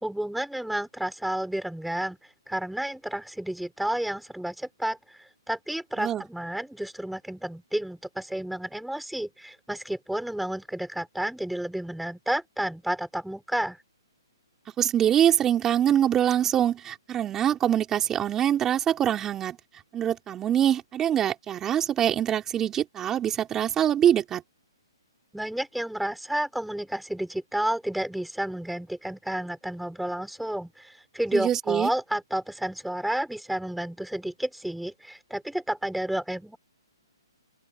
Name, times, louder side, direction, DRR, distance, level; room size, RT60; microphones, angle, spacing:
voice 1, 0.0-2.2 2.5-13.8 25.3-36.6, right 1 dB, ahead, 4.6 m, -31 dB
voice 2, 14.8-19.6 19.9-24.4 31.3-31.9, right 10 dB, 15° right, 3.5 m, -24 dB
open air
hypercardioid pair, 135°, 2 cm